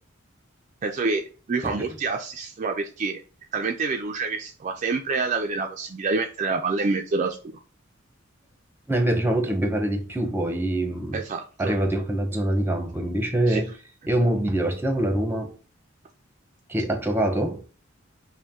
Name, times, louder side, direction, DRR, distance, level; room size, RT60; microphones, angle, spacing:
voice 1, 0.8-3.2 3.5-7.4 11.1-11.7 13.5-13.6, right 4 dB, 40° right, 0.4 m, -27 dB
voice 2, 8.9-11.2 11.6-13.7 14.1-15.5 16.7-17.6, right 1 dB, 10° right, 0.7 m, -24 dB
5.2 x 2.2 x 3.5 m
head